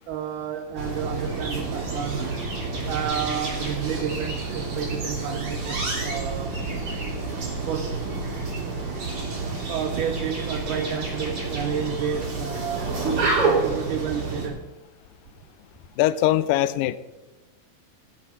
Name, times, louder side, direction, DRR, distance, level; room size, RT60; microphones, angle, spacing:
voice 1, 0.1-2.3 2.9-6.7 7.7-8.0 9.7-14.7, right 7 dB, 70° right, 5 dB, 2.1 m, -31 dB
sound 1, 0.8-14.5, right 3 dB, 40° right, 3.3 m, -29 dB
voice 2, 16.0-17.0, left 14 dB, 80° left, 16 dB, 2.1 m, -21 dB
16.0 x 9.5 x 5.6 m, 1.1 s
omnidirectional pair, 4.3 m